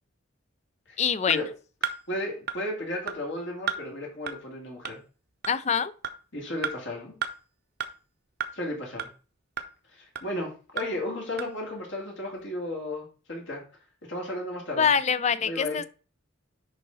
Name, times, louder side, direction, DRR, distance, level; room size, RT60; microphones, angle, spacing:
voice 1, 1.0-1.4 5.5-5.9 14.8-15.8, left 7 dB, 35° left, 0.4 m, -24 dB
sound 1, 1.3-1.4 1.8-2.0 2.5-2.6 3.1-3.2 3.7-3.8 4.3-4.4 4.9-5.0 5.4-5.6 6.0-6.2 6.6-6.7 7.2-7.3 7.8-7.9 8.4-8.5 9.0-9.1 9.6-9.7 10.2-10.3 10.8-10.9 11.4-11.5, right 7 dB, 50° right, 0.7 m, -31 dB
voice 2, 2.1-5.0 6.3-7.1 8.5-9.1 9.9-13.6 14.1-14.9 15.4-15.8, left 1 dB, 65° left, 2.5 m, -34 dB
10.5 x 3.8 x 4.0 m
head